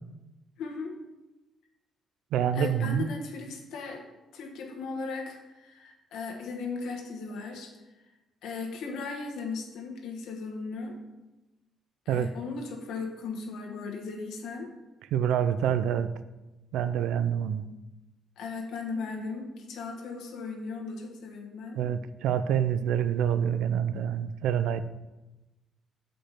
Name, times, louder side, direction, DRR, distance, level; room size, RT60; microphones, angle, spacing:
voice 1, 0.6-1.0 2.5-4.1 4.3-7.8 8.4-11.0 12.0-14.7 18.4-21.8, left 4 dB, 85° left, 2 dB, 1.2 m, -37 dB
voice 2, 2.3-3.1 12.1-12.3 15.1-16.1 16.7-17.7 21.8-24.8, right 9 dB, 85° right, 13 dB, 0.4 m, -27 dB
6.7 x 5.0 x 5.8 m, 1.1 s
cardioid pair, 90°, 0 cm